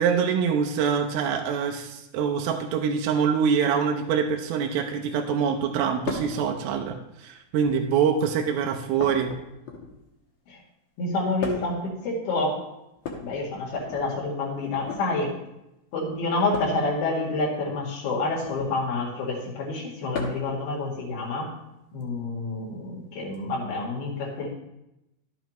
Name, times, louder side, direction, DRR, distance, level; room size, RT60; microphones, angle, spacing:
voice 1, 0.0-6.9 7.2-9.3, right 7 dB, 80° right, 3 dB, 2.5 m, -24 dB
sound 1, 6.1-6.4 7.5-8.0 9.0-10.1 11.4-11.8 13.0-14.0 14.7-15.1 16.5-16.8 18.4-18.8 20.1-20.5 22.0-22.1 23.3-23.4, left 5 dB, 65° left, 1.8 m, -35 dB
voice 2, 11.0-12.6 13.2-15.3 15.9-21.5 21.9-24.5, left 2 dB, 85° left, -5 dB, 3.9 m, -28 dB
12.0 x 8.1 x 3.0 m, 0.88 s
omnidirectional pair, 4.4 m